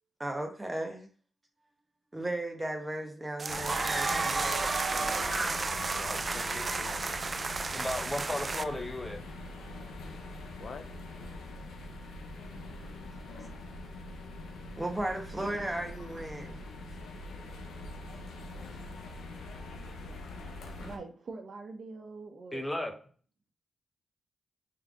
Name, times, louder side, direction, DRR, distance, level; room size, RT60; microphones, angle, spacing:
voice 1, 0.2-1.1 2.1-4.5 5.2-5.6 12.7-12.8 13.6-13.7 14.8-16.6, right 1 dB, 20° right, 1.1 m, -35 dB
sound 1, 3.4-8.6, right 4 dB, 40° right, 0.3 m, -32 dB
sound 2, 3.5-21.0, left 2 dB, 90° left, 0.7 m, -43 dB
voice 2, 3.8-5.4 6.0-7.1 10.6-10.9, left 5 dB, 60° left, 0.4 m, -45 dB
voice 3, 7.7-9.2 22.5-22.9, left 1 dB, 20° left, 0.9 m, -34 dB
voice 4, 20.8-22.9, right 3 dB, 60° right, 0.9 m, -44 dB
3.8 x 3.3 x 3.7 m
cardioid pair, 60°, 0 cm